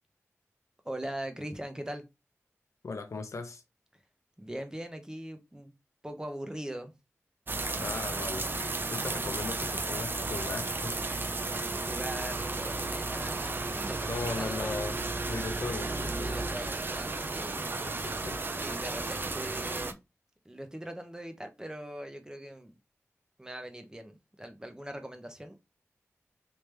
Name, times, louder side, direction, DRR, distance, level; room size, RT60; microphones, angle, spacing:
voice 1, 0.8-2.0 4.4-5.7 6.0-6.9 11.7-14.1 14.3-14.8 16.2-18.0 18.4-20.0 20.4-22.7 23.4-25.6, right 1 dB, 15° right, 0.9 m, -41 dB
voice 2, 2.8-3.6 7.8-8.5 8.9-11.0 14.1-15.0 15.2-16.4 17.8-18.4, left 4 dB, 75° left, 0.7 m, -38 dB
sound 1, 7.5-19.9, right 3 dB, 40° right, 0.5 m, -33 dB
3.4 x 2.9 x 3.3 m
wide cardioid pair, 75°, 5 cm